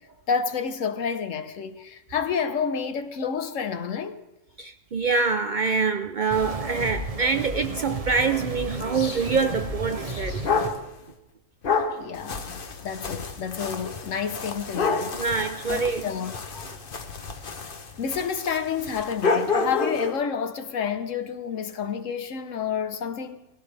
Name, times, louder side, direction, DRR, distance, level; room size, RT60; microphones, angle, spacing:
voice 1, 0.3-4.2 12.0-15.2 15.7-16.3 18.0-23.5, left 6 dB, 75° left, 1.3 m, -29 dB
voice 2, 4.6-10.4 15.1-16.1 16.6-16.7, right 4 dB, 55° right, 0.5 m, -25 dB
sound 1, 6.3-10.7, right 2 dB, 30° right, 1.1 m, -33 dB
sound 2, 8.8-10.9 11.6-20.2, left 4 dB, 45° left, 1.1 m, -30 dB
20.0 x 16.0 x 3.4 m
omnidirectional pair, 1.3 m